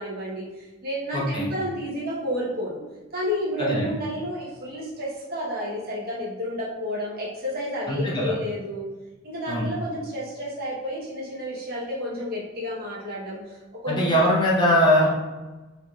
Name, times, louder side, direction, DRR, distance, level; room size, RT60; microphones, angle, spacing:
voice 1, 0.0-2.8 3.1-8.8 9.2-14.2, equal, 50° right, -5 dB, 1.0 m, -31 dB
voice 2, 1.1-1.5 3.6-3.8 7.9-8.3 9.5-9.7 13.9-15.2, equal, 25° left, -4 dB, 0.7 m, -21 dB
4.4 x 3.2 x 2.3 m, 1.2 s
head